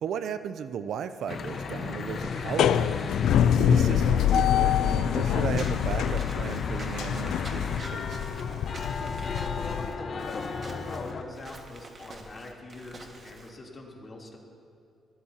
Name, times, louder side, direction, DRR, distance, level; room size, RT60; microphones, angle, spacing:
voice 1, 0.0-3.2 3.6-8.2, right 7 dB, 70° right, 11 dB, 0.5 m, -35 dB
Church bell / Traffic noise roadway noise, 1.3-11.2, left 5 dB, 50° left, 1.1 m, -34 dB
sound 1, 2.2-9.9, left 9 dB, 80° left, 0.4 m, -25 dB
Walk footsteps / Squeak, 5.5-13.5, right 3 dB, 40° right, 1.7 m, -46 dB
voice 2, 9.5-14.4, left 2 dB, 35° left, -3 dB, 3.2 m, -43 dB
22.5 x 14.0 x 2.9 m, 2.6 s
cardioid pair, 90°, 0 cm